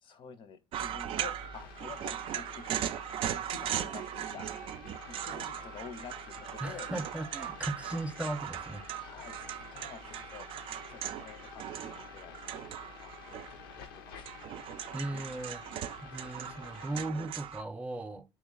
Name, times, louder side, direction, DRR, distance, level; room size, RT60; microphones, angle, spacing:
voice 1, 0.0-2.9 3.3-4.5 5.1-6.9 8.9-10.5 10.9-12.4 13.0-14.3, left 6 dB, 50° left, 0.5 m, -49 dB
sound 1, 0.7-13.8 14.1-17.6, right 10 dB, 55° right, 0.4 m, -39 dB
sound 2, 1.1-17.1, left 6 dB, 90° left, 0.6 m, -50 dB
voice 2, 6.6-8.8 14.9-15.6 16.0-18.2, right 1 dB, 10° right, 0.6 m, -37 dB
3.0 x 3.0 x 3.8 m
hypercardioid pair, 75°, 11 cm